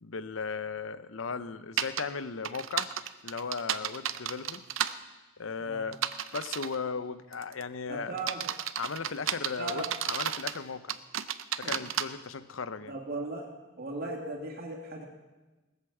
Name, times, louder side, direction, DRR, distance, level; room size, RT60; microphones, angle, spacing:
voice 1, 0.0-2.9 3.2-4.6 5.4-6.1 6.3-8.1 8.8-10.9 11.6-12.9, left 5 dB, 80° left, 13 dB, 0.7 m, -36 dB
sound 1, 1.8-2.0 2.4-4.9 5.9-6.8 7.3-7.6 8.2-10.6 10.9-12.0, right 10 dB, 85° right, 0.7 m, -32 dB
voice 2, 7.9-8.5 9.6-9.9 11.6-11.7 12.9-13.5 13.8-15.0, right 2 dB, 50° right, 1 dB, 2.5 m, -37 dB
19.5 x 8.2 x 7.2 m, 1.2 s
head